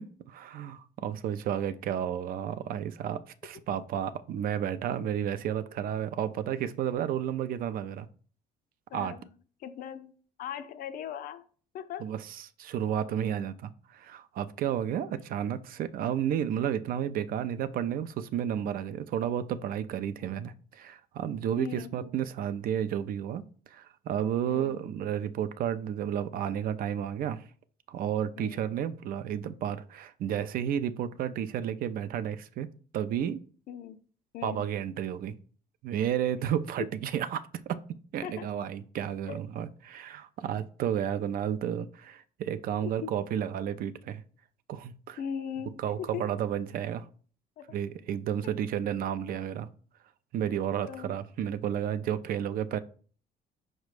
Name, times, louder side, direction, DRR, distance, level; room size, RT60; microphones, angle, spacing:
voice 1, 0.0-8.1 8.9-9.2 12.0-12.2 12.6-23.4 23.7-27.4 27.9-32.7 32.9-33.4 34.4-35.4 35.8-37.8 38.1-44.2 44.7-45.2 45.8-47.0 47.7-49.7 50.3-52.8, right 9 dB, 60° right, 0.4 m, -32 dB
voice 2, 8.9-9.3 9.6-10.1 10.4-11.5 11.7-12.2 13.2-13.3 21.6-21.9 24.4-24.8 28.4-28.7 33.7-34.0 34.3-34.7 38.2-38.5 39.3-39.4 42.8-43.1 45.2-46.3 47.6-47.7 50.8-51.2, left 9 dB, 60° left, 0.4 m, -39 dB
4.9 x 2.1 x 4.7 m
cardioid pair, 110°, 17 cm